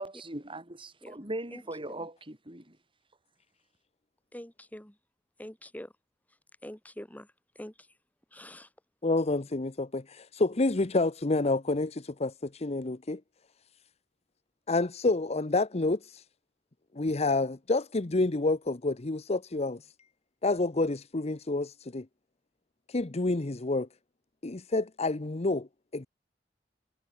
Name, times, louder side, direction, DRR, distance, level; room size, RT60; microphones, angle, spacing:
voice 1, 0.0-2.8, right 1 dB, 30° right, 5.5 m, -39 dB
voice 2, 4.3-4.9 5.4-5.9 6.6-7.3 7.6-7.7 8.3-8.7, equal, 10° left, 2.6 m, -44 dB
voice 3, 9.0-13.2 14.7-16.2 17.0-19.8 20.4-22.1 22.9-23.9 24.4-26.1, left 2 dB, 35° left, 0.8 m, -28 dB
head